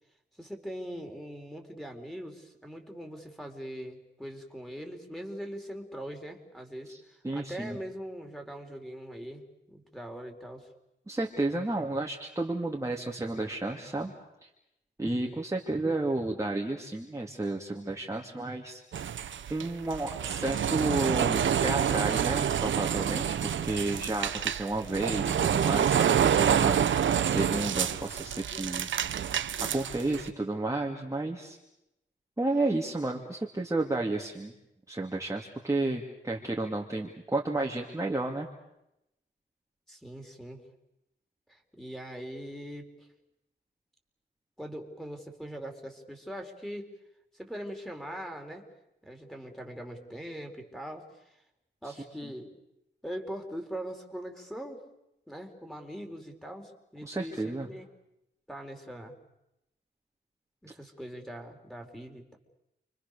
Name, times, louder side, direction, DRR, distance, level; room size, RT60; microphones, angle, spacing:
voice 1, 0.4-10.7 39.9-40.6 41.5-43.1 44.6-46.9 47.3-48.6 49.0-51.4 51.8-52.5 53.0-54.8 55.3-57.9 58.5-59.2 60.6-62.4, equal, ahead, 2 dB, 4.6 m, -41 dB
voice 2, 7.2-7.8 11.1-14.1 14.4-14.5 15.0-18.8 19.5-28.9 29.6-31.6 32.4-34.5 34.9-38.5 51.8-51.9 52.2-52.3 57.0-57.7, right 2 dB, 15° right, 0 dB, 2.6 m, -32 dB
sound 1, 18.9-30.3, right 8 dB, 90° right, 1.0 m, -27 dB
30.0 x 24.5 x 6.9 m, 0.86 s
wide cardioid pair, 85°, 19 cm